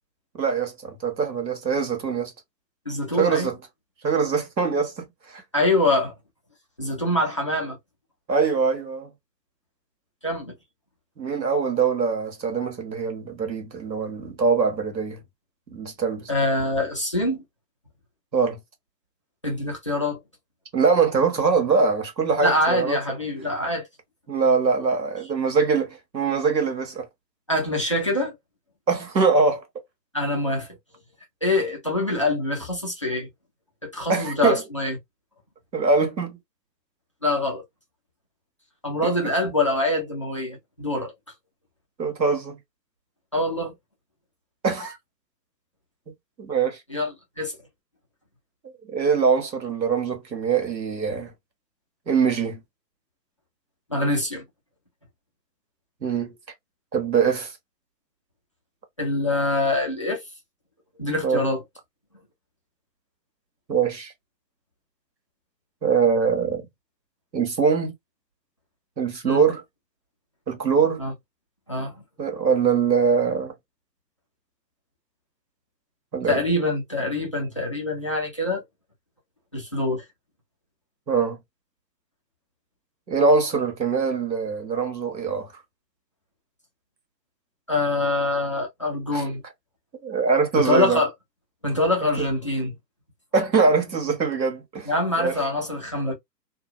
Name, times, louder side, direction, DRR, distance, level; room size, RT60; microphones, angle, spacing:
voice 1, 0.3-2.3 3.1-3.6 4.0-5.4 8.3-9.1 11.2-15.2 15.7-16.3 18.3-18.6 20.7-23.0 24.3-27.1 28.9-29.6 34.1-34.6 35.7-36.4 39.0-39.1 42.0-42.6 44.6-45.0 46.4-46.8 48.9-51.3 52.1-52.6 56.0-56.3 56.9-57.5 61.2-61.4 63.7-64.1 65.8-66.6 67.3-67.9 69.0-69.6 70.5-71.0 72.2-73.5 76.1-76.4 81.1-81.4 83.1-85.5 89.1-89.2 90.0-91.0 92.2-92.3 93.3-94.9 95.2-95.4, right 5 dB, 85° right, 1.2 m, -23 dB
voice 2, 2.9-3.5 5.5-6.1 6.8-7.8 10.2-10.5 16.3-17.4 19.4-20.2 22.4-23.9 27.5-28.3 30.1-30.7 31.4-33.3 33.8-35.0 37.2-37.6 38.8-41.1 43.3-43.7 46.9-47.6 53.9-54.4 59.0-60.2 61.0-61.6 69.2-69.4 71.0-71.1 71.7-72.0 76.3-78.6 79.5-80.0 87.7-89.4 90.5-91.1 91.6-92.8 94.9-96.1, left 2 dB, 20° left, 0.4 m, -24 dB
2.8 x 2.2 x 2.5 m
figure-of-eight pair, 125°, 50 cm